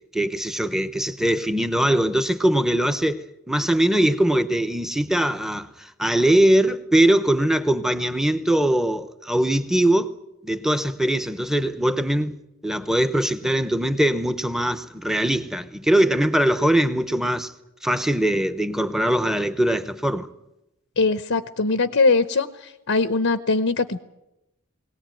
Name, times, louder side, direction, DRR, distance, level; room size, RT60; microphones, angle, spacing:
voice 1, 0.1-10.1 10.4-12.3 12.6-17.5 17.8-20.3, right 1 dB, ahead, 1.0 m, -21 dB
voice 2, 21.0-22.5 22.9-24.0, left 3 dB, 70° left, 0.9 m, -21 dB
21.5 x 18.5 x 9.2 m
head